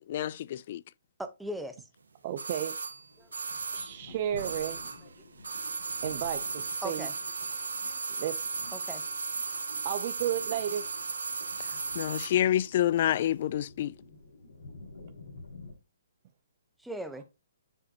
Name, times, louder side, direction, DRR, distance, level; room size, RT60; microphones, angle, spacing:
voice 1, 0.1-0.8 11.9-13.9, left 12 dB, 50° left, 0.4 m, -28 dB
voice 2, 1.2-1.9 3.2-3.3 5.9-6.0 6.8-7.1 7.6-8.0 8.7-9.0 16.8-17.2, equal, 5° right, 0.9 m, -39 dB
voice 3, 2.2-2.7 3.7-4.8 6.0-7.1 8.2-8.5 9.8-10.9, right 10 dB, 40° right, 0.7 m, -33 dB
sound 1, 2.4-5.1 5.4-12.4 12.6-12.7, right 4 dB, 85° right, 1.4 m, -36 dB
sound 2, 3.1-15.7, left 2 dB, 85° left, 5.3 m, -51 dB
9.8 x 4.9 x 2.9 m
hypercardioid pair, 145°, 0 cm